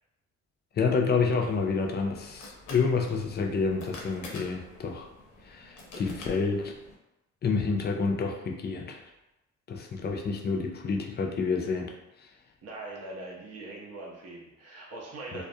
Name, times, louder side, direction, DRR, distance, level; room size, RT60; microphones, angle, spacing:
voice 1, 0.8-5.1 5.5-6.7 7.4-9.0 9.7-11.9 15.3-15.4, left 4 dB, 35° left, 1 dB, 0.4 m, -28 dB
sound 1, 1.4-7.0, left 2 dB, 90° left, 0.6 m, -47 dB
voice 2, 12.6-15.4, right 2 dB, 55° right, -3 dB, 0.6 m, -41 dB
2.3 x 2.0 x 2.6 m, 0.95 s
cardioid pair, 90°, 30 cm